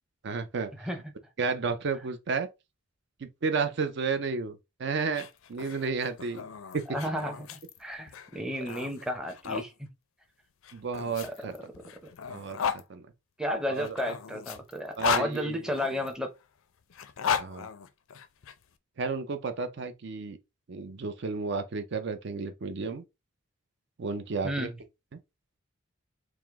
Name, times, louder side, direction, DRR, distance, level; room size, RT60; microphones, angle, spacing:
voice 1, 0.2-0.9 1.4-2.5 3.2-6.4 6.7-6.8 10.7-11.5 12.3-12.6 12.9-13.0 13.7-14.0 15.0-15.7 17.4-17.7 19.0-20.4 20.7-23.0 24.0-24.7, right 4 dB, 55° right, 0.4 m, -32 dB
voice 2, 0.8-1.1 6.9-9.7 11.2-11.3 12.0-12.1 13.4-16.3 24.4-24.8, equal, 5° right, 0.6 m, -33 dB
sound 1, 5.0-9.7 10.6-12.8 13.7-16.1 16.9-18.5, left 6 dB, 75° left, 0.4 m, -34 dB
4.8 x 2.0 x 3.4 m
head